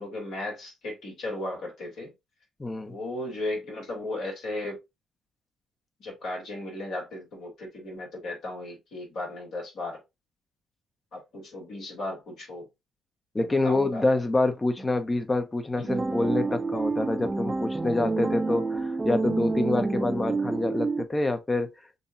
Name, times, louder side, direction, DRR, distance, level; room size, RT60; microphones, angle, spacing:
voice 1, 0.0-2.1 2.9-4.8 6.0-10.0 11.1-12.7 13.4-14.0 14.8-14.9 15.8-16.1, left 2 dB, 65° left, 2.8 m, -36 dB
voice 2, 2.6-2.9 13.3-21.7, left 2 dB, 25° left, 0.9 m, -26 dB
sound 1, 15.9-21.0, right 3 dB, 20° right, 0.7 m, -28 dB
6.7 x 2.9 x 2.6 m
hypercardioid pair, 45°, 0 cm